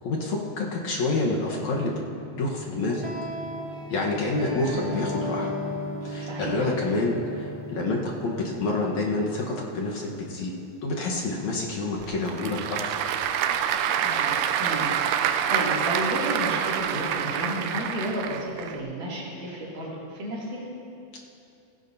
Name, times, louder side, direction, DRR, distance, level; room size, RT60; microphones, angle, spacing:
voice 1, 0.0-2.0 2.3-3.1 3.9-5.5 6.0-10.5 10.8-13.0, left 2 dB, 60° left, -2 dB, 2.1 m, -28 dB
sound 1, 2.8-9.8, left 1 dB, 30° right, 0.9 m, -35 dB
voice 2, 6.2-6.7 13.9-20.7, equal, 60° right, -5 dB, 4.0 m, -33 dB
Applause / Crowd, 12.0-18.8, right 9 dB, 80° right, 1.9 m, -26 dB
17.0 x 16.0 x 2.7 m, 2.7 s
omnidirectional pair, 4.2 m